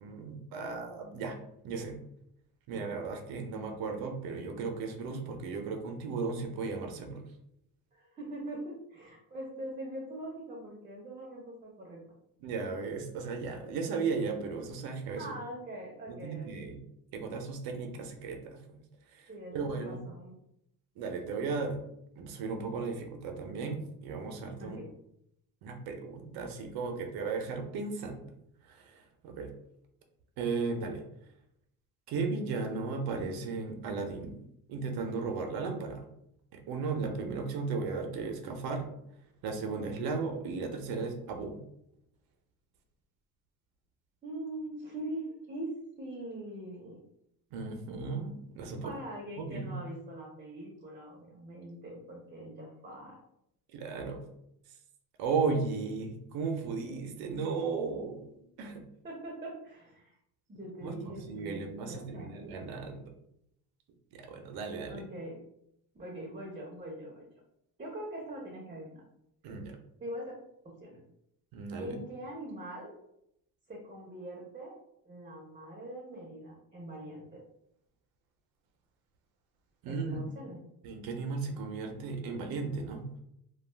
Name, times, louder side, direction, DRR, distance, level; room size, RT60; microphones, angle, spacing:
voice 1, 0.0-1.4 1.6-2.0 2.7-7.3 12.4-15.3 16.1-16.8 17.1-18.8 19.1-20.0 21.0-21.8 22.2-24.8 25.6-28.3 28.6-29.5 30.4-31.0 32.1-34.4 34.7-36.1 36.5-38.9 39.4-41.6 47.5-48.9 49.4-49.8 53.7-54.2 55.2-58.8 60.8-63.1 64.1-65.0 69.4-69.8 71.5-72.0 79.8-80.3 80.8-83.1, right 4 dB, 75° right, 4 dB, 0.6 m, -35 dB
voice 2, 7.9-12.0 15.2-16.8 19.3-20.3 24.6-24.9 44.2-45.7 46.0-47.0 48.8-53.2 59.0-60.2 60.5-61.6 61.9-62.3 64.9-65.3 65.9-67.3 67.8-69.0 70.0-70.3 70.6-71.0 71.8-72.9 73.7-74.8 75.0-77.4 79.9-80.6, right 1 dB, 20° right, -2 dB, 0.7 m, -42 dB
2.3 x 2.2 x 3.2 m, 0.77 s
cardioid pair, 125°, 36 cm